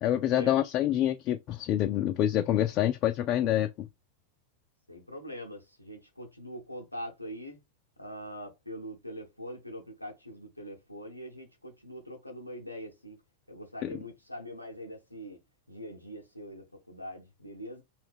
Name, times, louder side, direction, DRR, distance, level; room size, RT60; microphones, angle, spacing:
voice 1, 0.0-3.9 13.8-13.9, left 12 dB, 40° left, 0.3 m, -27 dB
voice 2, 4.9-7.6 8.0-13.2 13.5-15.4 15.7-17.8, equal, 85° left, 0.6 m, -43 dB
2.6 x 2.2 x 3.4 m
figure-of-eight pair, 90°, 0 cm